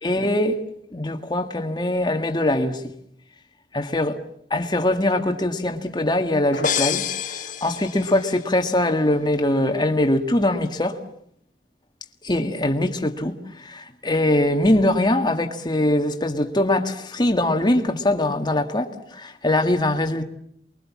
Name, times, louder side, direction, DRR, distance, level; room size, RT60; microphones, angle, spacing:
voice 1, 0.0-0.6 0.9-2.9 3.7-4.2 4.5-11.0 12.2-20.2, left 1 dB, 25° left, 1.8 m, -22 dB
putting of glass by barman, 6.5-7.2, left 3 dB, 80° left, 1.4 m, -38 dB
sound 1, 6.6-8.4, left 7 dB, 45° left, 1.6 m, -27 dB
29.0 x 22.5 x 7.4 m
head